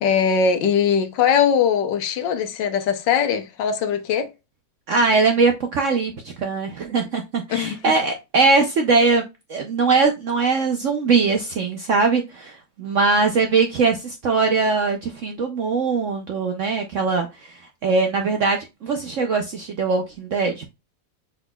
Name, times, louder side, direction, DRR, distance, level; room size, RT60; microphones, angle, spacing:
voice 1, 0.0-4.3 7.5-8.0, left 7 dB, 75° left, 1.4 m, -21 dB
voice 2, 4.9-9.2 9.5-17.5 17.8-20.6, right 4 dB, 65° right, 0.8 m, -21 dB
5.9 x 4.1 x 2.2 m
omnidirectional pair, 2.0 m